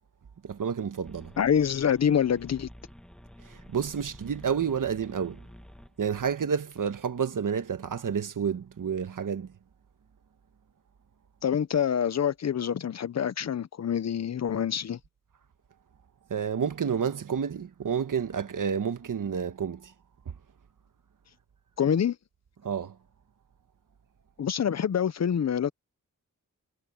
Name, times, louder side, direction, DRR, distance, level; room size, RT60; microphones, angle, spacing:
voice 1, 0.4-1.3 3.5-5.4 6.0-9.5 16.3-19.9 22.6-22.9, right 7 dB, 75° right, 1.4 m, -30 dB
sound 1, 1.0-6.2, equal, 5° left, 1.5 m, -50 dB
voice 2, 1.4-2.7 11.4-15.0 21.8-22.2 24.4-25.7, left 8 dB, 55° left, 0.6 m, -26 dB
wide cardioid pair, 130°, 32 cm